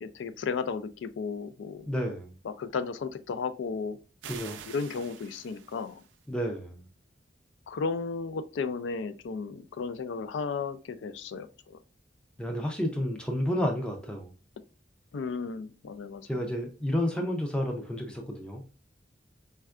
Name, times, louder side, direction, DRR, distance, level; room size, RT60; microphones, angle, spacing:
voice 1, 0.0-1.9 2.4-4.0 4.7-6.0 7.7-11.8 15.1-16.2, left 5 dB, 85° left, 0.3 m, -34 dB
voice 2, 1.9-2.4 4.3-4.6 6.3-6.9 12.4-14.3 16.2-18.6, equal, 5° left, 0.4 m, -31 dB
sound 1, 4.2-6.3, right 8 dB, 90° right, 0.4 m, -46 dB
4.3 x 2.3 x 2.3 m
head